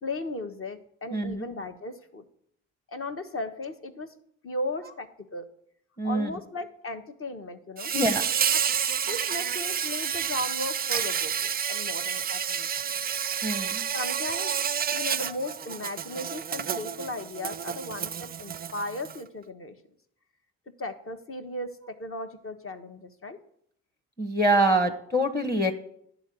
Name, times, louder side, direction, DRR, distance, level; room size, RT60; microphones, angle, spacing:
voice 1, 0.0-2.2 2.9-4.1 4.4-5.4 6.0-7.9 8.5-8.6 9.1-12.9 13.9-14.6 14.9-19.7 20.8-23.4, left 1 dB, 35° left, 8 dB, 1.3 m, -36 dB
voice 2, 1.1-1.4 6.0-6.3 7.9-8.2 13.4-13.8 24.2-25.7, right 1 dB, 10° left, 7 dB, 1.2 m, -25 dB
Insect, 7.8-19.2, right 8 dB, 25° right, 0.4 m, -30 dB
10.5 x 3.9 x 7.6 m, 0.70 s
hypercardioid pair, 50°, 36 cm